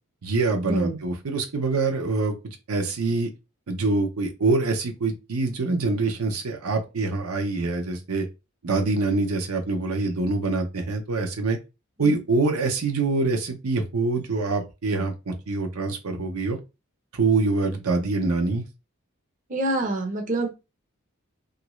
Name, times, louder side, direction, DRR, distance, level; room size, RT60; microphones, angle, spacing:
voice 1, 0.2-3.3 3.7-8.3 8.6-11.6 12.0-16.6 17.1-18.6, right 3 dB, 75° right, 4 dB, 0.6 m, -25 dB
voice 2, 19.5-20.5, right 2 dB, 35° right, 2 dB, 0.6 m, -26 dB
2.9 x 2.5 x 3.0 m, 0.26 s
head